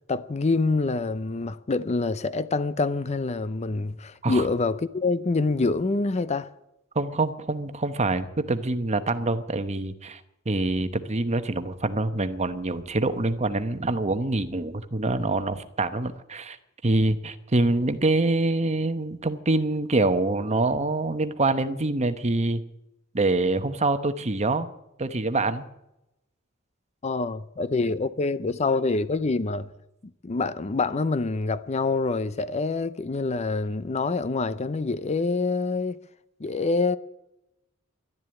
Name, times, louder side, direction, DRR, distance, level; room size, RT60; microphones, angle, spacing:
voice 1, 0.1-6.5 27.0-29.7 30.2-36.0 36.4-37.0, left 3 dB, 30° left, 0.5 m, -26 dB
voice 2, 6.9-10.2 10.5-16.6 16.8-22.6 23.1-24.7 25.0-25.6, right 2 dB, 35° right, 1.0 m, -25 dB
12.0 x 11.0 x 9.7 m
head